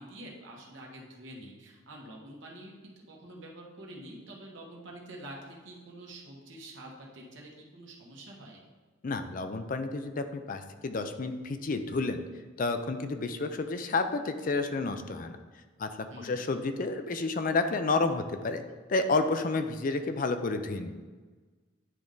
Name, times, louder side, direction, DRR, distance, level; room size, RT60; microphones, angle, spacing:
voice 1, 0.0-8.6 16.1-16.4, right 1 dB, 65° right, -1 dB, 1.4 m, -47 dB
voice 2, 9.0-12.2 12.6-15.4 15.8-15.9 16.2-18.6 18.9-21.0, left 3 dB, 40° left, 8 dB, 0.4 m, -30 dB
10.0 x 3.6 x 3.8 m, 1.4 s
head